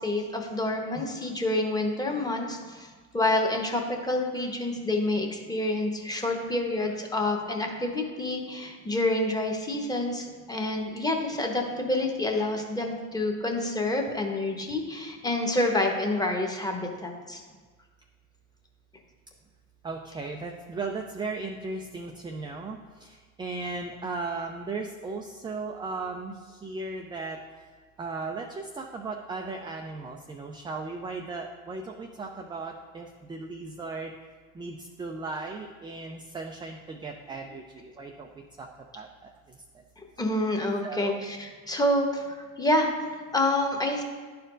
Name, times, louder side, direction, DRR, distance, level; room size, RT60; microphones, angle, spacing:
voice 1, 0.0-17.4 40.0-42.9 43.3-44.0, left 1 dB, 10° left, 2 dB, 1.1 m, -28 dB
voice 2, 0.9-1.3 19.8-27.4 28.0-34.1 34.5-38.3 38.6-38.7 39.0-39.3 40.8-41.2, right 3 dB, 10° right, 2 dB, 0.3 m, -36 dB
11.0 x 4.4 x 2.6 m, 1.4 s
hypercardioid pair, 80°, 43 cm